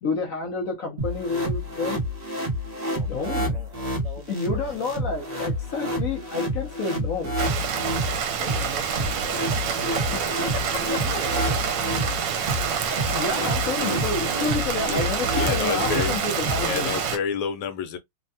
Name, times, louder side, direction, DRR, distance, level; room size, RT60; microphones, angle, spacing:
voice 1, 0.0-2.0 3.1-3.6 4.3-7.4 10.1-11.2 11.5-11.6 12.9-16.9, left 4 dB, 60° left, 0.9 m, -30 dB
sound 1, 1.0-17.0, equal, 30° right, 0.7 m, -29 dB
voice 2, 2.8-5.0 8.3-10.6 11.0-11.8, right 1 dB, 60° right, 1.4 m, -42 dB
Rain, 7.4-17.2, right 7 dB, 80° right, 1.3 m, -27 dB
voice 3, 14.9-16.2 16.6-18.0, left 7 dB, 90° left, 1.4 m, -29 dB
3.4 x 2.1 x 2.6 m
omnidirectional pair, 2.0 m